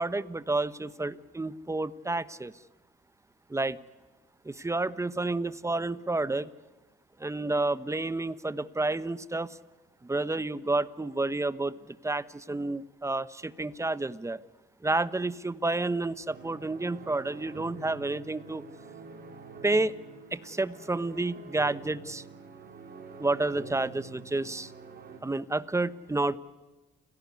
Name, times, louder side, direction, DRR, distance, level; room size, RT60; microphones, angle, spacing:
voice 1, 0.0-2.5 3.5-3.8 4.4-6.5 7.2-9.6 10.0-11.8 12.0-14.4 14.8-18.6 19.6-19.9 20.3-22.2 23.2-24.7 25.2-26.4, right 2 dB, 15° right, 15 dB, 1.2 m, -30 dB
sound 1, 16.3-25.2, right 4 dB, 50° right, 5.8 m, -47 dB
29.5 x 17.5 x 9.7 m, 1.2 s
cardioid pair, 90°, 20 cm